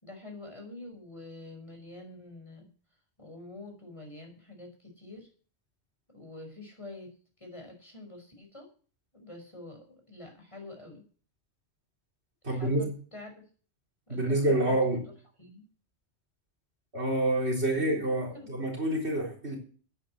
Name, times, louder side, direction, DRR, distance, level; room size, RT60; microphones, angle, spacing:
voice 1, 0.0-2.7 3.2-5.3 6.1-7.1 7.4-8.7 9.1-11.0 12.5-13.4 14.1-15.0 15.4-15.6 17.7-18.0 18.3-18.6, left 2 dB, 25° left, 5.2 m, -46 dB
voice 2, 12.4-12.9 14.1-15.0 16.9-19.6, right 1 dB, 70° right, 4.2 m, -27 dB
10.5 x 9.2 x 7.7 m
omnidirectional pair, 1.1 m